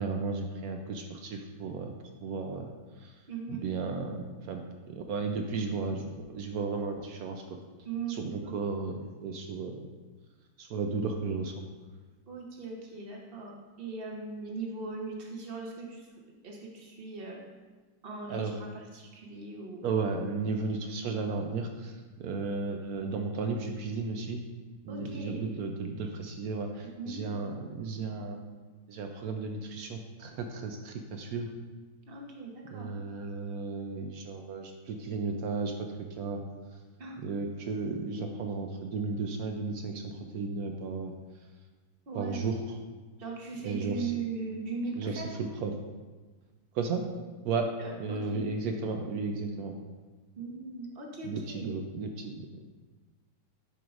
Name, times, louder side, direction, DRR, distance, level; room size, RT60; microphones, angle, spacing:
voice 1, 0.0-1.9 2.2-2.7 3.0-3.1 3.5-7.6 8.1-9.8 10.6-11.6 18.3-18.6 19.8-24.4 24.8-28.6 28.9-31.5 32.7-36.4 37.2-41.1 42.1-42.8 43.6-44.1 45.0-45.7 46.7-47.0 47.4-47.7 48.0-49.7 51.2-52.5, right 4 dB, 75° right, 4 dB, 0.8 m, -34 dB
voice 2, 3.3-3.6 7.8-8.2 8.4-8.6 12.3-17.4 18.0-19.9 24.9-25.5 27.0-27.2 32.1-32.9 37.0-37.2 42.1-42.5 43.2-45.2 47.8-48.4 50.4-51.7, right 4 dB, 40° right, -1 dB, 0.9 m, -39 dB
10.0 x 4.6 x 2.5 m, 1.3 s
omnidirectional pair, 2.0 m